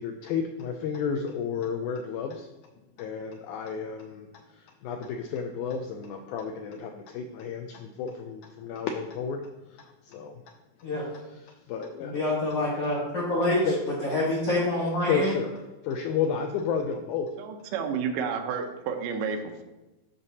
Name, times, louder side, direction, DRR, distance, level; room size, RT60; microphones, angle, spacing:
voice 1, 0.0-2.5 3.0-10.4 11.5-12.2 13.6-13.8 15.1-15.5 15.8-17.3, left 6 dB, 90° left, 5 dB, 1.7 m, -32 dB
voice 2, 12.0-13.7 14.0-15.3, left 1 dB, 55° left, -6 dB, 1.9 m, -26 dB
voice 3, 17.4-19.6, right 6 dB, 75° right, 4 dB, 2.2 m, -31 dB
12.5 x 5.2 x 2.8 m, 1.0 s
omnidirectional pair, 4.1 m